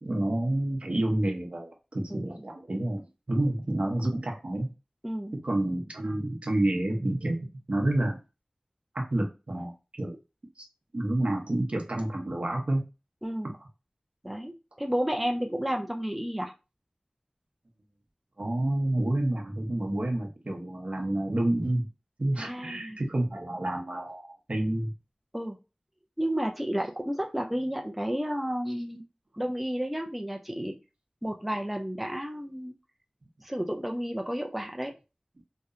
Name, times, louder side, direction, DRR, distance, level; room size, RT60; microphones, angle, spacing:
voice 1, 0.0-4.7 5.4-8.2 8.9-9.7 10.0-10.2 10.6-10.7 10.9-12.8 18.4-21.9 22.2-24.9, right 1 dB, 65° right, 2 dB, 0.7 m, -29 dB
voice 2, 5.0-5.3 13.2-13.6 14.2-16.5 22.4-23.0 25.3-25.6 26.2-29.0 29.4-30.7 31.2-32.7 33.4-34.9, equal, 5° right, 3 dB, 0.4 m, -31 dB
2.7 x 2.1 x 2.4 m, 0.30 s
wide cardioid pair, 50°, 2 cm